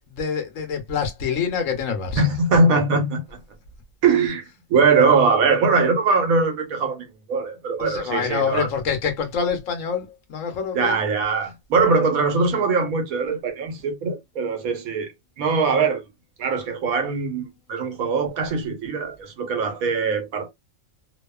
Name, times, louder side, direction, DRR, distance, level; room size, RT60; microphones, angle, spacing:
voice 1, 0.2-2.2 7.8-10.0 10.3-10.9, left 6 dB, 70° left, 1.1 m, -26 dB
voice 2, 2.1-3.4 4.0-8.7 10.7-15.1 15.4-16.1 16.4-20.5, right 4 dB, 85° right, 1.2 m, -21 dB
2.7 x 2.3 x 2.2 m
omnidirectional pair, 1.4 m